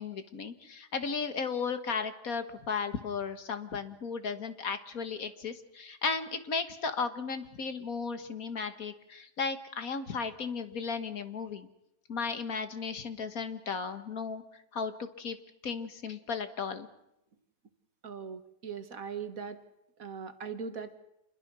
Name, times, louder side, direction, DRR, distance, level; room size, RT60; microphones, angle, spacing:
voice 1, 0.0-11.7 12.1-14.4 14.7-15.4 15.6-16.9, left 5 dB, 60° left, 10 dB, 1.8 m, -35 dB
voice 2, 18.0-19.6 20.0-21.0, right 6 dB, 55° right, 10 dB, 1.7 m, -40 dB
27.0 x 21.5 x 6.1 m, 0.84 s
omnidirectional pair, 1.8 m